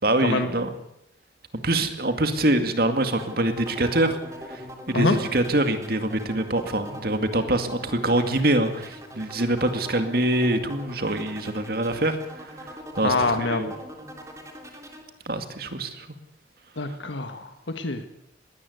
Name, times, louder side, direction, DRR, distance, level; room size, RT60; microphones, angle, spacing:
voice 1, 0.0-0.7 1.6-13.7 15.3-16.1, right 1 dB, 50° right, 7 dB, 2.2 m, -25 dB
sound 1, 3.0-15.0, equal, 15° right, 3.2 m, -42 dB
voice 2, 13.0-13.7 16.8-18.1, left 3 dB, 75° left, 7 dB, 1.5 m, -25 dB
20.5 x 17.0 x 8.0 m, 0.80 s
head